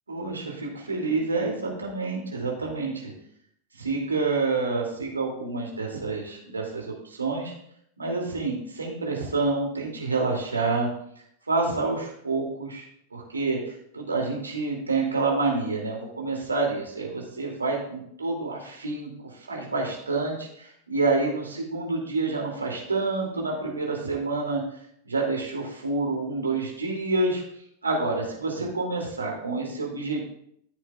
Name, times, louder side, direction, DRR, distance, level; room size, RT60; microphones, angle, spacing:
voice 1, 0.1-3.1 3.8-7.5 8.0-10.9 11.5-19.1 19.5-24.6 25.0-27.4 27.8-30.2, right 3 dB, 75° right, -1 dB, 2.6 m, -28 dB
14.5 x 7.8 x 2.4 m, 0.70 s
figure-of-eight pair, 90°, 0 cm